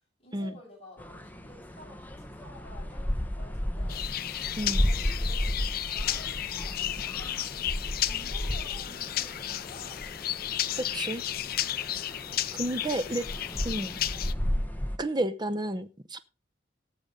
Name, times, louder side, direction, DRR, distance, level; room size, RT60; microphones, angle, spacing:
voice 1, 0.2-4.0 4.8-5.4 5.9-10.1 12.2-14.3, left 2 dB, 35° left, -2 dB, 6.5 m, -52 dB
sound 1, 1.0-15.0, equal, 10° left, 1.0 m, -34 dB
sound 2, 3.9-14.3, left 12 dB, 55° left, 0.5 m, -33 dB
voice 2, 10.8-11.2 12.6-13.2 13.6-13.9 15.0-16.2, right 1 dB, 25° right, 12 dB, 0.8 m, -31 dB
18.0 x 7.0 x 3.8 m, 0.31 s
head